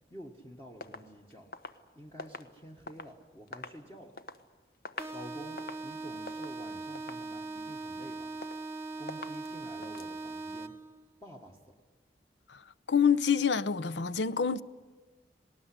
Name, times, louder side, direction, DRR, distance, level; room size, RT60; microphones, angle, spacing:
voice 1, 0.1-1.5 1.9-4.2 5.1-8.3 9.0-10.8 11.2-11.6, equal, 15° left, 1.5 m, -49 dB
sound 1, 0.8-3.2 3.5-4.4 4.7-5.2 5.5-5.9 6.3-6.6 6.9-7.3 7.7-8.1 8.4-8.8 9.1-9.5 9.8-10.1, left 3 dB, 55° left, 1.2 m, -45 dB
sound 2, 5.0-11.0, right 3 dB, 15° right, 1.3 m, -40 dB
voice 2, 12.9-14.6, left 6 dB, 85° left, 0.8 m, -26 dB
19.5 x 19.5 x 10.0 m
head